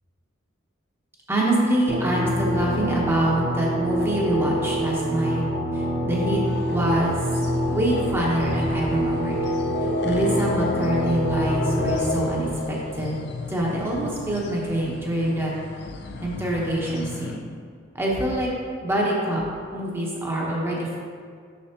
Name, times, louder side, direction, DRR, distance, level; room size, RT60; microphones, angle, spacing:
voice 1, 1.3-5.4 6.0-6.4 6.7-7.2 7.7-9.4 10.0-13.1 13.5-15.5 16.2-17.4 17.9-18.5 18.8-19.4 19.7-21.0, right 1 dB, 10° right, -4 dB, 1.0 m, -25 dB
sound 1, 1.9-12.0, equal, 55° right, 0.8 m, -26 dB
sound 2, 6.5-17.4, left 3 dB, 55° left, 0.4 m, -33 dB
6.7 x 6.0 x 2.9 m, 2.1 s
head